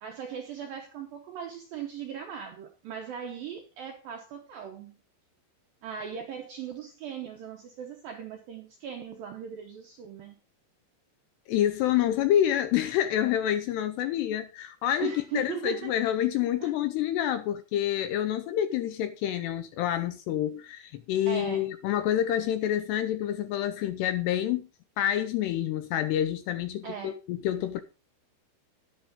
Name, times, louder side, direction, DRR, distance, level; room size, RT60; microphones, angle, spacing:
voice 1, 0.0-5.0 5.8-10.4 15.0-15.9 16.6-16.7 21.3-21.7 26.8-27.1, right 8 dB, 75° right, 2.2 m, -39 dB
voice 2, 11.5-24.7 25.0-27.8, left 11 dB, 80° left, 2.5 m, -28 dB
11.0 x 10.5 x 3.7 m
omnidirectional pair, 5.3 m